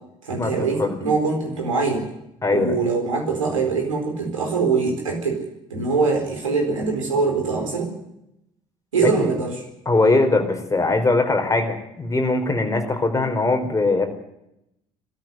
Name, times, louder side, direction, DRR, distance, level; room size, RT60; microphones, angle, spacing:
voice 1, 0.2-2.1 2.5-5.4 5.7-7.9 8.9-9.6, right 4 dB, 80° right, 3 dB, 4.3 m, -23 dB
voice 2, 2.4-2.8 9.0-9.1 9.9-14.1, left 3 dB, 20° left, 5 dB, 4.5 m, -21 dB
20.5 x 13.5 x 9.4 m, 0.82 s
figure-of-eight pair, 55°, 16 cm